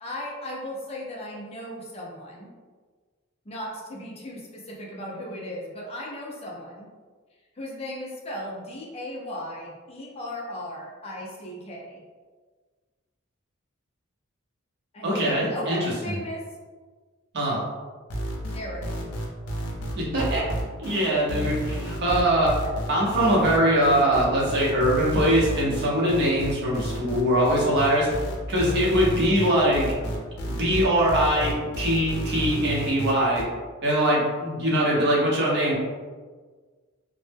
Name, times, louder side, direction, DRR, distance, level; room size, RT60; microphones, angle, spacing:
voice 1, 0.0-2.5 3.5-6.9 7.6-12.0 14.9-16.4 18.5-18.8, left 1 dB, 30° left, -3 dB, 0.4 m, -36 dB
voice 2, 15.0-15.8 16.1-16.2 17.3-17.6 20.0-20.4 20.8-22.6 22.9-28.1 28.5-29.9 30.5-33.4 33.8-35.8, right 1 dB, 50° right, -4 dB, 0.7 m, -22 dB
sound 1, 18.1-33.4, equal, 85° left, 0.5 m, -31 dB
2.0 x 2.0 x 3.2 m, 1.5 s
head